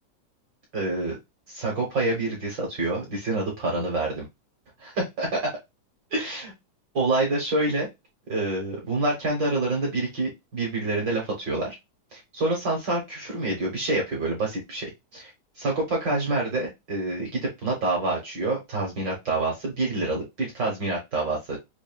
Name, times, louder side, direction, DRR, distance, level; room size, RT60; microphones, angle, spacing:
voice 1, 0.7-1.2 1.5-4.2 4.8-5.5 6.1-6.5 6.9-7.9 8.3-11.7 12.1-15.3 15.6-21.6, right 2 dB, 55° right, -1 dB, 1.3 m, -27 dB
5.9 x 2.5 x 2.3 m, 0.21 s
omnidirectional pair, 3.6 m